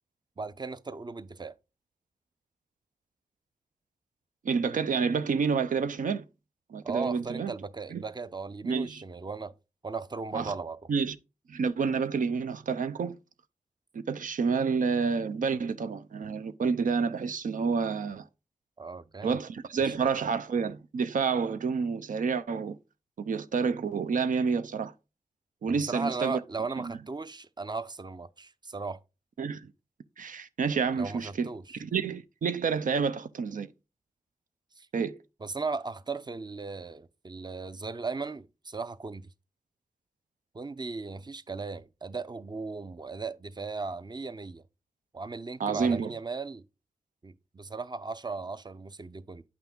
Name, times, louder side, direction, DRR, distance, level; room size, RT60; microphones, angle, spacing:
voice 1, 0.4-1.6 6.8-9.5 9.8-10.8 18.8-19.4 19.9-20.2 25.7-29.0 31.0-31.8 34.8-34.9 35.4-39.3 40.5-44.6 45.1-46.6 47.2-49.4, right 4 dB, 35° right, 0.6 m, -37 dB
voice 2, 4.4-6.3 6.7-7.5 7.9-8.0 8.6-9.0 10.3-10.5 10.9-11.2 11.5-13.2 14.1-18.2 19.2-22.8 23.2-24.9 25.6-26.4 26.8-26.9 29.4-29.7 30.2-31.5 31.8-33.7 34.9-35.2 45.6-46.1, right 5 dB, 90° right, 0.6 m, -29 dB
9.0 x 5.8 x 3.7 m
cardioid pair, 60°, 13 cm